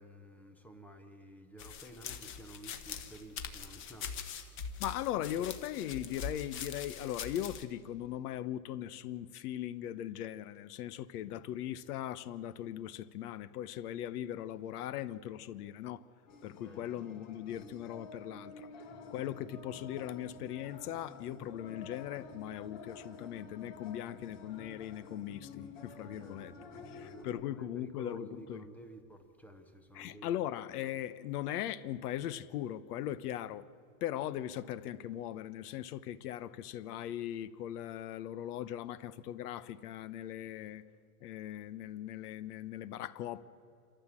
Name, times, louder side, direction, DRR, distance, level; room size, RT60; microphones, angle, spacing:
voice 1, 0.0-4.6 5.4-5.5 16.6-16.8 25.9-26.4 26.7-30.3, right 1 dB, 5° left, 0.4 m, -52 dB
sound 1, 1.6-7.6, left 7 dB, 25° left, 1.0 m, -43 dB
voice 2, 4.8-16.1 16.4-18.7 19.1-26.5 26.8-28.6 29.9-33.7 34.0-40.8 41.2-43.4, left 12 dB, 80° left, 1.1 m, -39 dB
sound 2, 16.3-27.2, left 3 dB, 55° left, 3.5 m, -51 dB
27.5 x 13.5 x 7.5 m
supercardioid pair, 170°, 45 cm